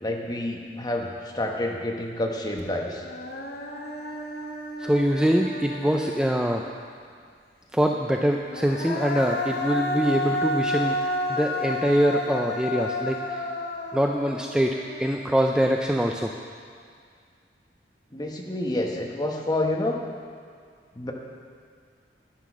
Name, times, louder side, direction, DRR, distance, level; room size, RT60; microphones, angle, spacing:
voice 1, 0.0-3.0 18.1-20.0 21.0-21.1, left 1 dB, 25° left, 0 dB, 1.2 m, -28 dB
Human voice, 2.6-2.7 3.0-6.7 8.4-15.6, left 1 dB, 60° left, 1.1 m, -31 dB
voice 2, 4.8-6.7 7.7-13.4 13.9-16.3, equal, 5° right, 1 dB, 0.4 m, -24 dB
10.5 x 10.0 x 6.1 m, 2.1 s
head